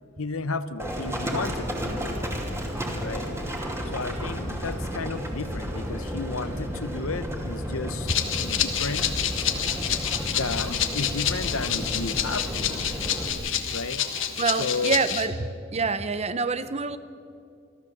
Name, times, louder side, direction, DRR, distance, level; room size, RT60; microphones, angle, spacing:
voice 1, 0.2-2.1 3.0-3.2 3.9-8.1 8.4-9.0 10.2-12.8 13.7-14.0 14.6-15.0, left 4 dB, 85° left, 12 dB, 1.0 m, -33 dB
Livestock farm animals working animals, 0.8-13.3, equal, 15° right, 2.6 m, -32 dB
Rattle (instrument), 8.1-15.3, left 10 dB, 65° left, 1.5 m, -28 dB
sound 1, 9.0-14.3, right 2 dB, 50° right, 4.9 m, -48 dB
voice 2, 14.4-17.0, right 4 dB, 30° right, 13 dB, 0.8 m, -26 dB
27.0 x 13.5 x 7.4 m, 2.5 s
head